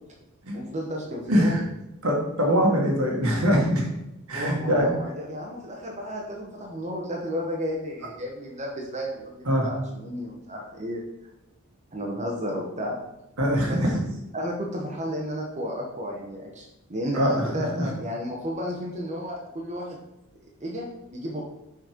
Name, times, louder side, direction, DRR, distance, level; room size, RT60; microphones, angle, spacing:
voice 1, 0.5-1.6 4.3-11.0 11.9-13.0 13.7-13.8 14.3-16.6 16.9-20.0 20.6-21.4, equal, 35° right, -1 dB, 1.1 m, -32 dB
voice 2, 1.3-1.6 2.0-3.9 4.3-4.9 9.5-9.7 13.4-13.9 17.1-17.9, equal, 75° right, 0 dB, 1.8 m, -23 dB
6.3 x 4.3 x 5.1 m, 0.90 s
head